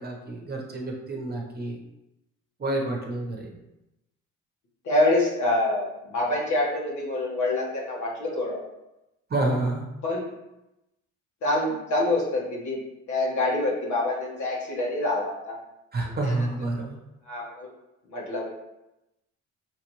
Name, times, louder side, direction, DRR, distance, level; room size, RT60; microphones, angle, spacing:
voice 1, 0.0-1.8 2.6-3.5 9.3-9.8 15.9-16.9, right 2 dB, 30° right, 0 dB, 1.0 m, -28 dB
voice 2, 4.8-8.6 10.0-10.3 11.4-12.8 13.1-15.6 16.0-16.3 17.3-17.7 18.1-18.5, left 2 dB, 70° left, -3 dB, 1.4 m, -26 dB
6.1 x 2.5 x 3.0 m, 0.93 s
cardioid pair, 90°, 30 cm